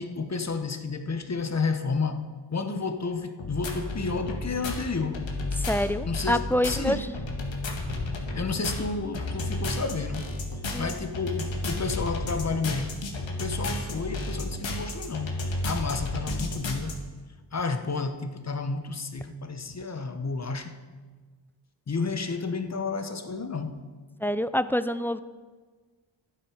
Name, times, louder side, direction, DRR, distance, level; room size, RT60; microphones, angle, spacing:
voice 1, 0.0-5.3 6.0-7.1 8.3-10.3 10.8-13.0 13.4-17.0 17.5-20.7 21.9-23.8, left 4 dB, 35° left, 1.0 m, -31 dB
sound 1, 3.4-16.9, left 2 dB, 75° left, 1.7 m, -32 dB
voice 2, 5.6-7.0 10.7-11.0 24.2-25.2, left 1 dB, 5° left, 0.4 m, -26 dB
11.5 x 9.2 x 4.9 m
cardioid pair, 65°, 46 cm